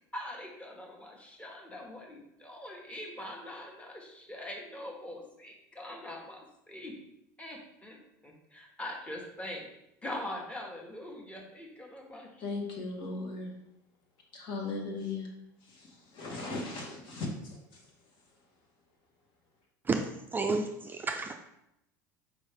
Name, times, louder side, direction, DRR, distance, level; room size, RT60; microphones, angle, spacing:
voice 1, 0.1-6.9 7.4-9.7 10.0-12.4, left 1 dB, 15° left, 0 dB, 1.1 m, -43 dB
voice 2, 12.4-13.5 14.3-15.3 15.7-17.6, left 3 dB, 55° left, 0 dB, 1.3 m, -37 dB
voice 3, 19.9-20.7 21.1-21.3, right 3 dB, 20° right, 4 dB, 0.4 m, -30 dB
4.7 x 3.1 x 3.4 m, 0.82 s
hypercardioid pair, 85°, 9 cm